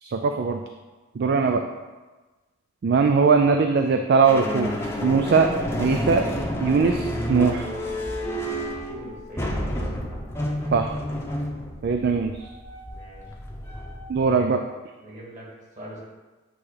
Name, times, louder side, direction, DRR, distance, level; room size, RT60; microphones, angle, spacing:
voice 1, 0.0-0.6 1.2-1.6 2.8-4.7 5.0-5.5 5.8-6.3 6.6-7.7 10.7-10.9 11.8-12.5 14.1-14.6, right 5 dB, 55° right, 5 dB, 0.3 m, -20 dB
sound 1, 4.3-14.4, equal, 15° left, 0.7 m, -30 dB
voice 2, 8.8-9.8 10.1-10.2 12.9-13.2 14.3-14.5 15.0-15.5 15.8-16.0, right 1 dB, 40° right, -6 dB, 2.1 m, -42 dB
8.4 x 2.9 x 4.9 m, 1.2 s
head